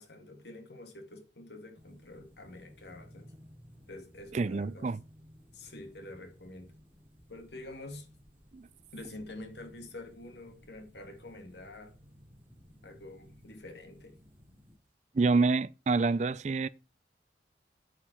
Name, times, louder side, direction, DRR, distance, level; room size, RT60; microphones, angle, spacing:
voice 1, 0.0-3.3 3.9-5.0 5.5-6.7 7.3-8.1 8.9-12.0 12.8-14.2, left 2 dB, 75° left, 2.1 m, -47 dB
sound 1, 1.7-14.8, equal, 10° right, 3.2 m, -58 dB
voice 2, 4.3-5.0 8.5-8.7 15.1-16.7, right 4 dB, 40° right, 0.4 m, -27 dB
8.7 x 7.6 x 4.5 m
head